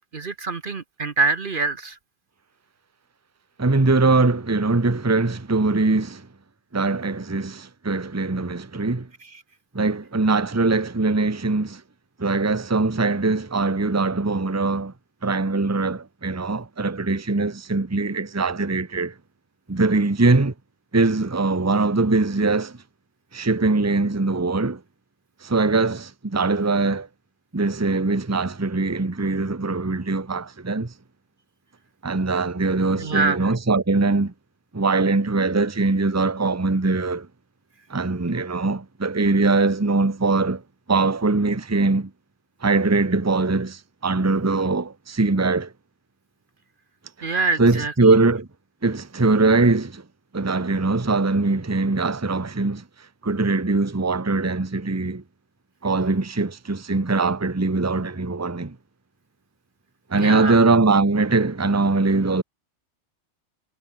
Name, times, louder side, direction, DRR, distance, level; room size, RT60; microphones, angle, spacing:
voice 1, 0.1-2.0 33.0-33.5 47.2-47.9 60.1-60.6, right 4 dB, 50° right, 1.2 m, -25 dB
voice 2, 3.6-6.3 6.7-9.1 9.7-11.8 12.2-14.9 15.2-19.1 19.7-20.5 20.9-22.8 23.3-24.8 25.4-27.1 27.5-30.9 32.0-34.3 34.7-37.3 37.9-40.6 40.9-42.1 42.6-45.7 47.6-48.5 48.8-50.0 50.3-52.8 53.2-55.2 55.8-58.8 60.1-62.4, right 3 dB, 15° right, 1.0 m, -22 dB
omnidirectional pair, 1.2 m